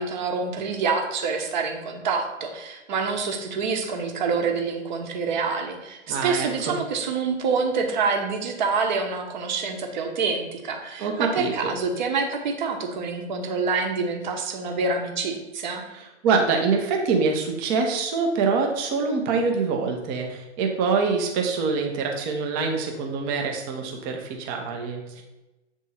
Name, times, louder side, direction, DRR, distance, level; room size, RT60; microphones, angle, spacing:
voice 1, 0.0-15.8, right 4 dB, 40° right, 3 dB, 1.0 m, -27 dB
voice 2, 6.1-6.8 11.0-11.7 15.9-25.2, right 4 dB, 20° right, 2 dB, 0.7 m, -25 dB
7.6 x 3.6 x 4.2 m, 1.0 s
figure-of-eight pair, 130°, 36 cm